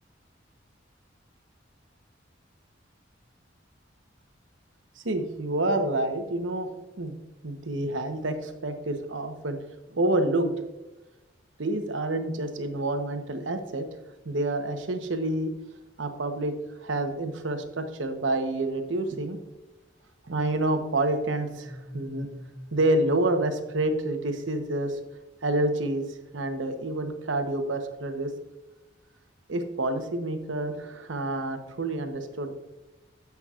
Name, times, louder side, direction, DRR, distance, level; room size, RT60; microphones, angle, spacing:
voice 1, 5.0-6.7 7.0-7.2 7.4-9.6 9.9-10.5 11.6-13.9 14.2-15.5 16.0-19.4 20.2-22.3 22.7-25.0 25.4-28.3 29.5-32.5, right 2 dB, 80° right, 7 dB, 1.0 m, -28 dB
sound 1, 21.6-24.3, equal, 10° left, 1.7 m, -45 dB
13.5 x 5.9 x 2.5 m, 1.0 s
head